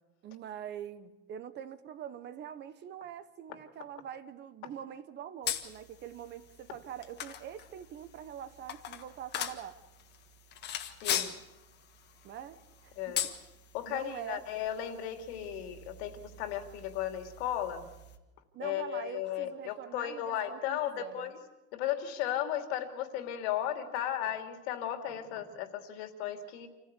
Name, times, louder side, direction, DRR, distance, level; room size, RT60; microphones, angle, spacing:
voice 1, 0.2-9.8 11.1-11.4 12.2-13.3 13.9-14.4 18.5-21.3, right 9 dB, 35° right, 1.0 m, -44 dB
sound 1, 5.4-18.2, left 9 dB, 30° left, 1.6 m, -41 dB
voice 2, 13.0-13.3 13.7-17.8 18.6-21.4 21.7-26.7, left 11 dB, 75° left, 2.8 m, -35 dB
27.5 x 15.0 x 8.3 m
cardioid pair, 160°, 32 cm